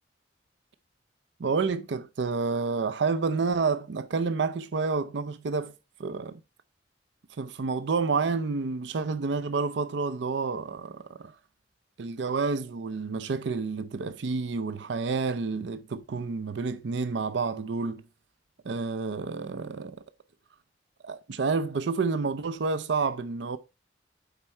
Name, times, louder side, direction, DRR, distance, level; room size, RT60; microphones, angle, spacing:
voice 1, 1.4-5.7 6.0-6.4 7.4-11.3 12.0-18.0 18.7-20.0 21.0-23.6, right 4 dB, 75° right, 0.5 m, -29 dB
8.3 x 4.3 x 4.3 m
head